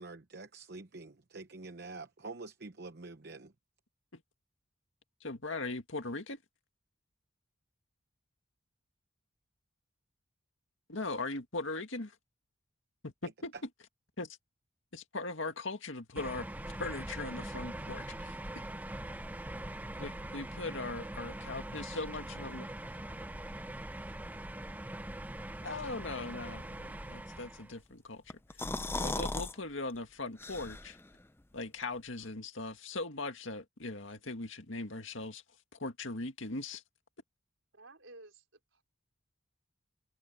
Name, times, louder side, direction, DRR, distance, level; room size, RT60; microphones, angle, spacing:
voice 1, 0.0-3.5, right 3 dB, 55° right, 0.9 m, -46 dB
voice 2, 5.2-6.4 10.9-12.1 13.0-13.5 14.2-14.4 14.9-16.5 16.8-18.4 20.0-22.7 25.6-28.7 29.0-31.0 31.5-35.4 35.8-36.8, left 3 dB, 70° left, 2.1 m, -39 dB
sound 1, 16.2-27.8, right 1 dB, 10° right, 1.0 m, -42 dB
sound 2, 28.3-29.5 29.9-30.0 30.4-31.1, left 2 dB, 10° left, 0.5 m, -36 dB
voice 3, 37.7-38.4 38.7-38.8, right 2 dB, 70° right, 4.7 m, -53 dB
head